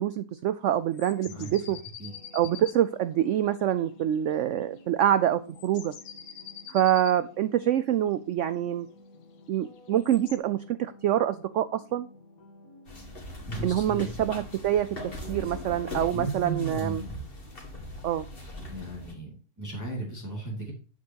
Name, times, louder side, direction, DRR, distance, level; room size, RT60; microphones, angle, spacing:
voice 1, 0.0-1.8 2.3-5.9 6.7-8.9 9.5-12.1 13.6-14.9 15.3-17.0 18.0-18.3, right 11 dB, 70° right, 0.7 m, -26 dB
sound 1, 0.9-2.8 3.9-4.3 4.6-4.8 5.5-7.2 9.7-10.4, left 9 dB, 90° left, 1.4 m, -45 dB
sound 2, 2.0-16.2, left 2 dB, 65° left, 1.9 m, -53 dB
sound 3, 12.9-19.1, left 1 dB, 35° left, 2.2 m, -40 dB
voice 2, 13.5-14.1 16.1-17.2 18.6-20.7, right 2 dB, 10° right, 2.3 m, -35 dB
8.5 x 8.4 x 2.8 m
omnidirectional pair, 1.6 m